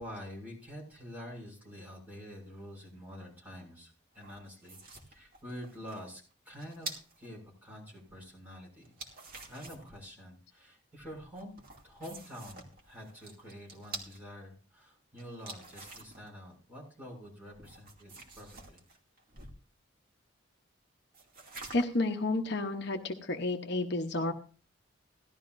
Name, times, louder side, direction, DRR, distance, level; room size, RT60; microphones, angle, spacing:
voice 1, 0.0-8.9 9.5-11.5 11.8-18.8, equal, 10° right, -3 dB, 6.8 m, -47 dB
sound 1, 4.2-7.3 8.8-10.0 11.4-14.2 15.2-16.3 17.6-19.6 21.1-22.1, right 3 dB, 45° right, 2.5 m, -47 dB
voice 2, 21.7-24.3, left 2 dB, 55° left, 5 dB, 0.9 m, -31 dB
17.0 x 12.5 x 2.6 m, 0.37 s
head